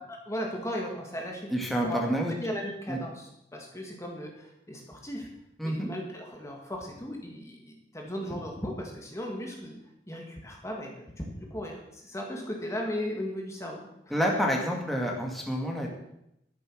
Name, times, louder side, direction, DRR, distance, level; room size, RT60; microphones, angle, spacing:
voice 1, 0.1-1.5 1.8-2.0 2.4-5.3 5.6-9.8 10.1-14.1, equal, 15° left, 0 dB, 2.1 m, -36 dB
voice 2, 1.5-2.3 2.9-3.0 5.6-5.9 14.1-15.9, equal, ahead, -1 dB, 2.1 m, -28 dB
12.5 x 10.0 x 6.4 m, 0.81 s
head